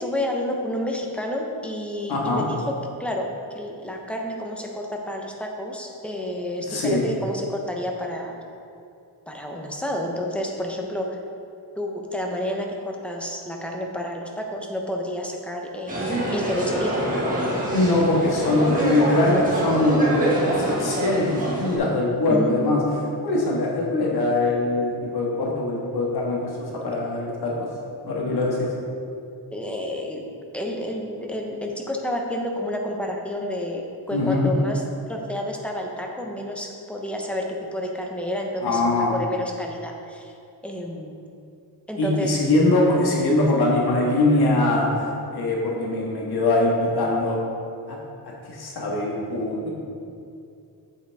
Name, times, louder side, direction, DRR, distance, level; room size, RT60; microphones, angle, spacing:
voice 1, 0.0-3.3 3.5-8.3 9.3-11.2 11.7-17.0 22.3-22.9 29.5-40.3 40.6-41.2 41.9-42.3, left 1 dB, 5° left, 1 dB, 0.8 m, -30 dB
voice 2, 2.1-2.5 6.6-7.0 17.7-22.8 23.2-26.5 26.8-27.7 28.0-28.7 34.1-34.5 38.6-39.1 42.0-44.9 45.3-47.4 48.5-49.7, left 2 dB, 65° left, -3 dB, 1.6 m, -22 dB
sound 1, 15.9-21.8, right 1 dB, 20° right, 1.6 m, -25 dB
8.1 x 8.0 x 3.5 m, 2.5 s
wide cardioid pair, 155°, 40 cm